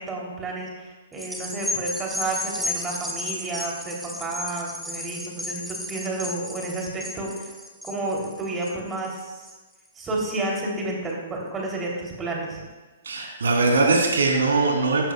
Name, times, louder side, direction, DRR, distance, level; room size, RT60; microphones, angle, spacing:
voice 1, 0.0-7.5 7.8-9.5 9.9-12.6, right 2 dB, 15° right, -2 dB, 3.0 m, -31 dB
sound 1, 1.1-9.8 10.3-10.4, left 1 dB, ahead, 1.1 m, -33 dB
voice 2, 13.0-15.1, right 3 dB, 65° right, 1 dB, 2.9 m, -21 dB
16.0 x 12.5 x 2.3 m, 1.3 s
figure-of-eight pair, 115°, 0 cm